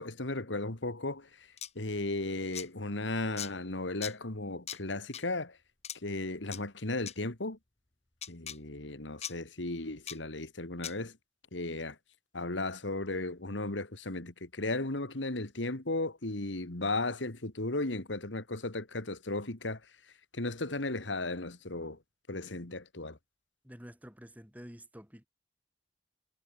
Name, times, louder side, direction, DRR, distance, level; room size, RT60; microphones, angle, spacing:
voice 1, 0.0-5.6 5.9-7.6 8.3-11.2 11.5-12.0 12.3-19.9 20.3-22.0 22.3-23.2, left 2 dB, 90° left, 2.4 m, -35 dB
sound 1, 1.6-1.7 2.5-2.7 3.4-3.5 4.0-4.1 4.7-4.8 5.1-5.2 5.8-6.0 6.5-6.6 7.1-7.2 8.2-8.6 9.2-9.3 10.1-10.2 10.8-10.9, left 9 dB, 35° left, 2.3 m, -39 dB
voice 2, 23.6-25.3, equal, 10° right, 6.8 m, -49 dB
head